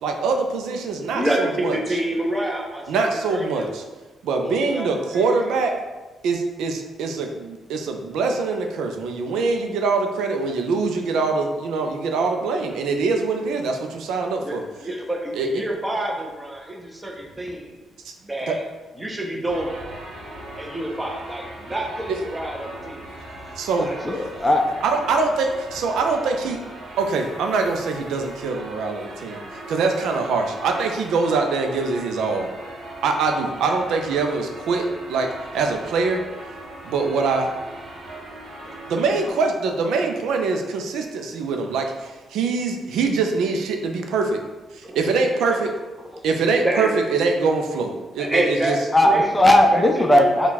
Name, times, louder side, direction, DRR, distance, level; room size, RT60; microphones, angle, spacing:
voice 1, 0.0-1.8 2.9-3.8 4.2-5.7 6.2-14.6 15.3-15.5 18.0-18.1 18.5-18.6 23.6-23.9 24.8-26.6 27.0-29.4 29.7-32.5 33.0-34.8 35.1-35.3 35.5-36.2 36.8-37.5 38.9-44.4 44.7-45.7 46.2-48.8, right 4 dB, 85° right, 3 dB, 0.4 m, -23 dB
voice 2, 1.1-3.7 4.4-5.7 14.4-17.7 18.2-18.6 19.0-19.9 20.6-23.2 23.8-24.0 44.8-45.0 45.3-45.6 46.6-46.9 48.2-48.8 49.0-49.3 49.7-50.5, right 1 dB, 15° right, -1 dB, 0.8 m, -28 dB
sound 1, 19.5-39.3, right 1 dB, 70° right, 0.9 m, -39 dB
voice 3, 24.0-24.8 48.9-50.5, left 1 dB, 15° left, 3 dB, 0.4 m, -17 dB
4.3 x 2.3 x 4.0 m, 1.2 s
cardioid pair, 95°, 0 cm